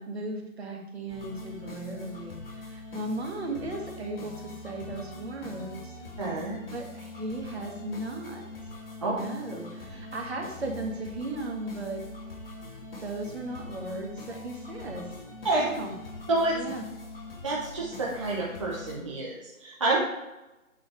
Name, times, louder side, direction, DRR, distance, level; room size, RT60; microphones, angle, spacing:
voice 1, 0.0-6.0 6.7-8.4 9.0-12.0 13.0-15.2 15.6-15.9 16.5-16.8, right 2 dB, 50° right, 1 dB, 2.1 m, -36 dB
sound 1, 1.1-18.9, left 2 dB, 45° left, 2.4 m, -43 dB
voice 2, 6.2-6.6 9.0-9.1 15.4-15.6 16.3-16.6 17.4-20.0, right 2 dB, 25° right, -5 dB, 1.0 m, -28 dB
8.5 x 6.1 x 4.8 m, 1.0 s
hypercardioid pair, 165°, 41 cm